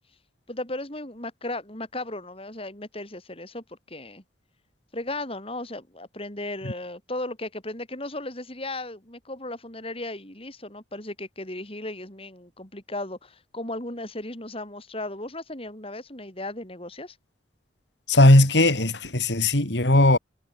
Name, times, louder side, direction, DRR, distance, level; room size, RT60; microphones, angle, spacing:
voice 1, 0.5-4.2 4.9-17.2, left 2 dB, 30° left, 6.1 m, -36 dB
voice 2, 18.1-20.2, left 1 dB, 75° left, 3.3 m, -18 dB
head